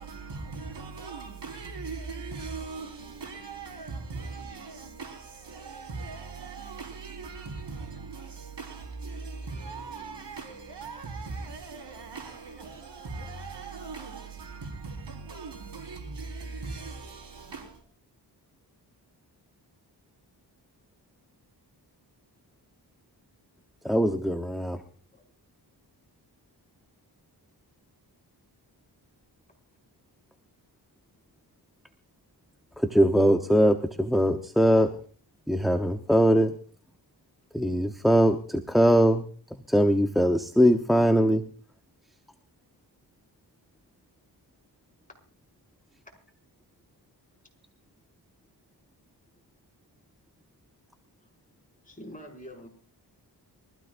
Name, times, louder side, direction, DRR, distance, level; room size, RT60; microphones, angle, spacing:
voice 1, 0.0-17.8, right 4 dB, 85° right, 4.8 m, -39 dB
voice 2, 23.8-24.8 32.8-35.0 35.5-36.6 37.5-39.3 39.7-41.4, equal, ahead, 1.0 m, -21 dB
voice 3, 51.8-52.7, equal, 20° left, 6.1 m, -44 dB
24.0 x 15.5 x 2.6 m
wide cardioid pair, 110°, 41 cm